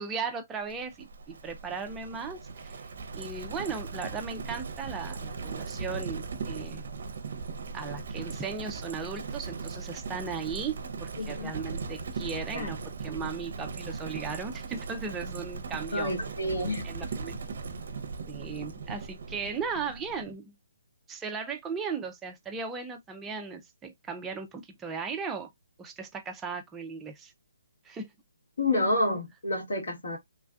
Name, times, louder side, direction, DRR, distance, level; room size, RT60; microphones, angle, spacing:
voice 1, 0.0-2.8 3.1-6.8 7.7-16.1 16.8-17.4 18.3-20.5 21.1-25.5 25.8-27.3 27.8-28.1, right 5 dB, 10° right, 0.3 m, -37 dB
Livestock farm animals working animals, 0.7-20.3, right 4 dB, 55° right, 0.6 m, -38 dB
voice 2, 11.2-11.5 12.5-12.7 15.9-16.8 28.6-30.2, left 1 dB, 70° left, 1.7 m, -29 dB
3.2 x 2.4 x 2.3 m
hypercardioid pair, 165°, 0 cm